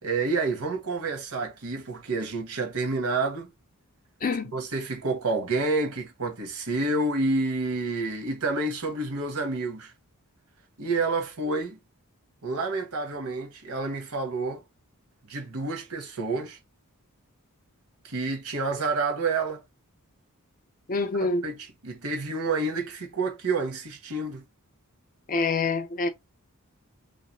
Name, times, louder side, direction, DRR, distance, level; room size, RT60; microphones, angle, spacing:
voice 1, 0.0-3.5 4.5-9.9 10.8-11.8 12.4-14.6 15.3-16.6 18.0-19.6 21.2-21.6 21.8-24.4, right 3 dB, 80° right, 1.3 m, -29 dB
voice 2, 4.2-4.5 20.9-21.5 25.3-26.1, left 3 dB, 40° left, 0.6 m, -26 dB
3.2 x 3.0 x 2.9 m
head